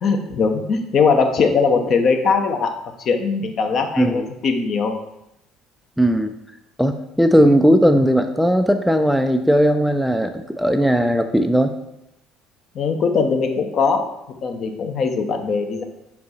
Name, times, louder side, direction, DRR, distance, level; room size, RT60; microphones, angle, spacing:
voice 1, 0.0-2.7 3.0-4.9 12.7-14.1 14.4-15.8, left 5 dB, 45° left, 5 dB, 0.8 m, -20 dB
voice 2, 4.0-4.3 6.0-6.3 6.8-11.7, equal, ahead, 7 dB, 0.4 m, -17 dB
5.5 x 4.3 x 4.1 m, 0.85 s
figure-of-eight pair, 55°, 0 cm